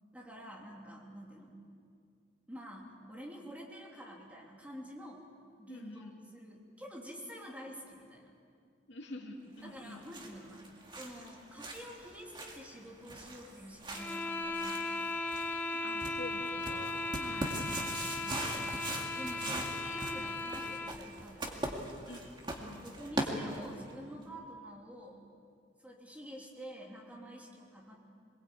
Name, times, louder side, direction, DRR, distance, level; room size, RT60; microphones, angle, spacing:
voice 1, 0.1-1.6 2.5-5.2 5.6-8.3 9.6-15.1 17.2-17.5 18.2-18.8 19.1-21.9 22.6-25.2 25.8-27.9, equal, 5° right, -2 dB, 3.1 m, -48 dB
voice 2, 5.7-6.2 8.9-10.1 15.8-17.1 19.2-19.6 22.1-22.9, left 2 dB, 65° left, 1 dB, 2.7 m, -47 dB
sound 1, 9.7-23.9, right 1 dB, 25° right, 2.2 m, -41 dB
sound 2, 13.9-21.0, left 3 dB, 10° left, 0.9 m, -37 dB
23.5 x 22.0 x 8.7 m, 2.3 s
head